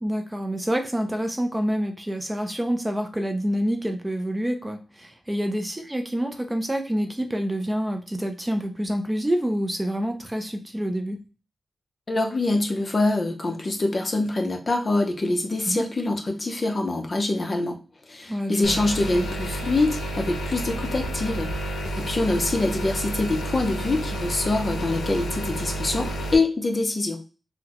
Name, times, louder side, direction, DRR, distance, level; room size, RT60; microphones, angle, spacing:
voice 1, 0.0-11.2 15.6-15.8 18.3-18.8, equal, 10° right, 5 dB, 0.4 m, -27 dB
voice 2, 12.1-17.8 18.1-21.5 21.9-27.2, left 2 dB, 35° left, 3 dB, 0.6 m, -25 dB
sound 1, 18.6-26.4, right 1 dB, 90° left, 0.6 m, -30 dB
3.9 x 2.1 x 2.9 m, 0.34 s
wide cardioid pair, 105°, 0 cm